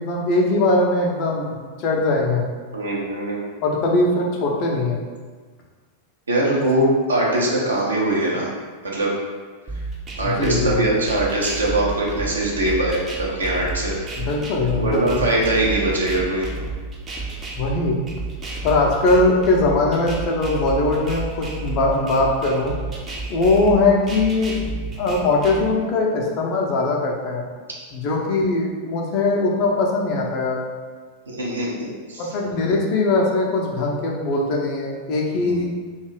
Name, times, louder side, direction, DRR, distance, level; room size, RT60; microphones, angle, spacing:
voice 1, 0.0-2.5 3.6-5.0 10.2-10.9 14.2-15.2 17.6-18.0 18.6-22.8 23.3-24.6 25.0-27.5 27.9-30.6 32.2-35.7, left 2 dB, 40° left, -1 dB, 0.5 m, -21 dB
voice 2, 2.7-3.5 6.3-8.5 8.9-9.1 10.2-13.9 14.8-16.5 31.3-32.3 35.3-35.6, right 1 dB, 75° right, -4 dB, 0.6 m, -22 dB
sound 1, 9.7-25.7, right 3 dB, 25° right, 0.5 m, -31 dB
2.6 x 2.2 x 3.1 m, 1.5 s
figure-of-eight pair, 90°, 0 cm